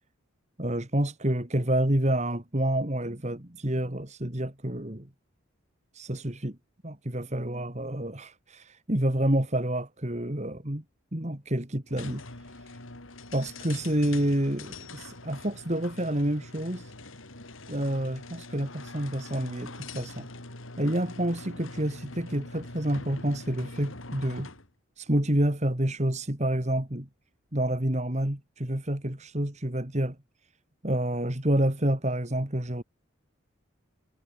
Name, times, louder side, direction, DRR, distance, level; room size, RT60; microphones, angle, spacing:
voice 1, 0.6-5.1 5.9-6.6 6.8-10.8 11.1-12.2 13.3-16.9 17.7-20.3 20.8-24.5 25.0-27.1 27.5-30.2 30.8-32.8, right 1 dB, 35° right, 2.6 m, -28 dB
sound 1, 11.9-24.7, left 2 dB, 70° left, 4.0 m, -43 dB
head